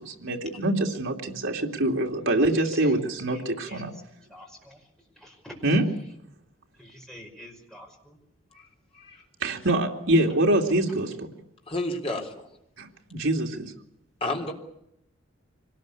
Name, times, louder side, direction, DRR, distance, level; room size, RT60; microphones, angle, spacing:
voice 1, 0.0-3.9 5.6-5.9 9.4-11.3 12.8-13.7, right 1 dB, 70° right, 1 dB, 2.8 m, -25 dB
voice 2, 3.3-3.9 4.3-4.8 5.2-5.6 6.8-8.2, left 1 dB, ahead, 0 dB, 5.5 m, -46 dB
voice 3, 11.7-12.5 14.2-14.5, left 1 dB, 30° left, 2 dB, 3.7 m, -31 dB
25.0 x 19.5 x 8.5 m, 0.78 s
head